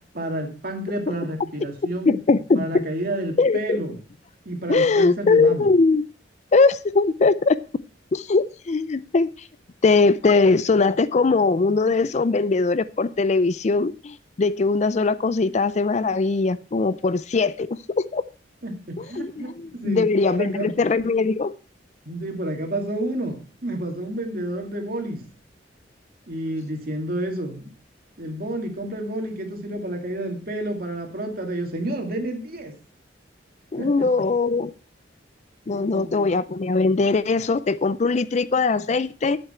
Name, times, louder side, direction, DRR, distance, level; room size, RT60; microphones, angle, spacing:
voice 1, 0.1-2.1 2.6-4.0 4.5-5.7 18.6-20.1 20.3-20.7 22.1-25.2 26.3-27.7 28.2-32.7 33.8-34.1 35.7-36.3, right 1 dB, 50° right, 2.2 m, -30 dB
voice 2, 2.1-2.9 3.4-3.8 4.7-6.0 6.5-7.6 8.1-9.5 9.8-18.2 19.0-21.5 33.7-34.7 35.7-39.4, left 3 dB, 40° left, 0.4 m, -21 dB
11.5 x 8.0 x 4.3 m
head